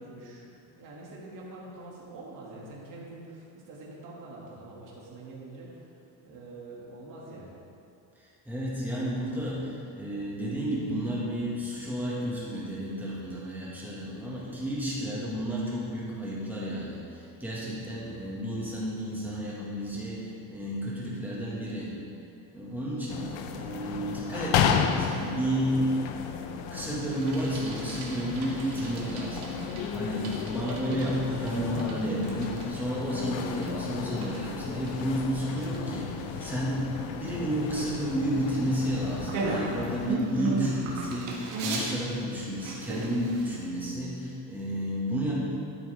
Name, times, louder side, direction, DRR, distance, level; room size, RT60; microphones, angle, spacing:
voice 1, 0.0-5.9 6.2-7.6, right 2 dB, 45° right, -5 dB, 2.4 m, -45 dB
voice 2, 8.2-22.0 22.5-26.0 26.7-45.3, equal, 5° right, -7 dB, 1.9 m, -32 dB
sound 1, 23.1-40.2, left 7 dB, 75° left, 0.8 m, -33 dB
Bicycle, 27.2-43.7, right 3 dB, 85° right, 1.9 m, -37 dB
12.5 x 8.1 x 3.5 m, 2.7 s
cardioid pair, 170°, 44 cm